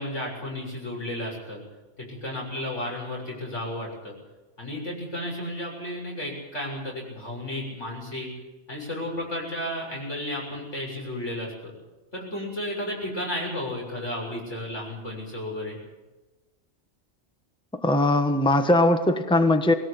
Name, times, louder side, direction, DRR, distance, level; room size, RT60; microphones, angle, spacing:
voice 1, 0.0-1.6 2.0-4.1 4.6-8.3 8.7-11.7 12.1-15.8, left 1 dB, 80° left, -2 dB, 7.4 m, -33 dB
voice 2, 17.7-19.7, left 1 dB, 5° left, 7 dB, 1.2 m, -20 dB
21.0 x 18.0 x 8.3 m, 1.1 s
omnidirectional pair, 1.2 m